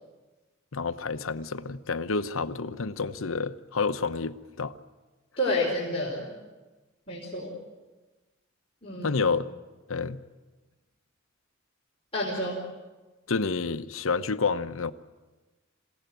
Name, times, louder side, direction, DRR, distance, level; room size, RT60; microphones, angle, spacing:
voice 1, 0.7-4.7 9.0-9.5 9.9-10.2 13.3-14.9, left 4 dB, 75° left, 0.9 m, -29 dB
voice 2, 5.4-6.3 7.1-7.5 8.8-9.2 12.1-12.6, left 1 dB, 30° left, 4.7 m, -29 dB
27.5 x 17.0 x 9.3 m
head